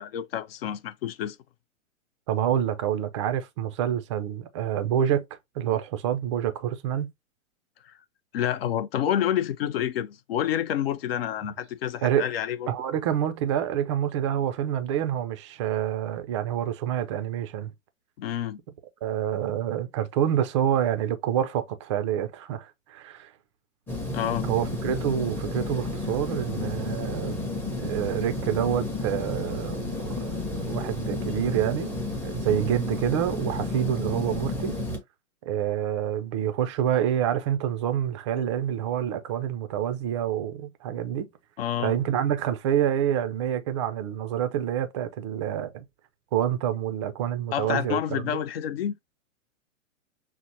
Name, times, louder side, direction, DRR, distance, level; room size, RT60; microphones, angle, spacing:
voice 1, 0.0-1.4 7.9-8.0 8.3-12.7 18.2-18.6 24.1-24.5 41.6-41.9 47.5-49.0, left 10 dB, 50° left, 0.5 m, -28 dB
voice 2, 2.3-5.2 5.6-7.1 12.0-12.2 12.7-17.7 19.0-23.3 24.4-27.4 27.8-30.3 30.7-34.7 35.5-41.3 41.8-45.8 46.3-48.4, right 10 dB, 25° right, 0.4 m, -27 dB
sound 1, 23.9-35.0, left 2 dB, 5° left, 0.7 m, -32 dB
6.0 x 2.0 x 2.8 m
figure-of-eight pair, 110°, 39 cm